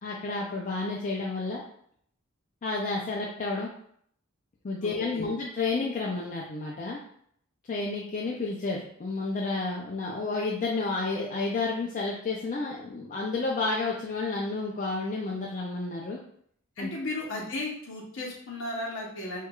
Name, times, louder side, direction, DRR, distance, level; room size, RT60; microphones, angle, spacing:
voice 1, 0.0-1.6 2.6-3.7 4.6-7.0 7.7-16.2 16.8-16.9, left 3 dB, 40° left, -3 dB, 0.4 m, -31 dB
voice 2, 4.8-5.3 16.8-19.5, left 2 dB, 65° left, -2 dB, 0.9 m, -35 dB
4.5 x 2.3 x 2.3 m, 0.64 s
head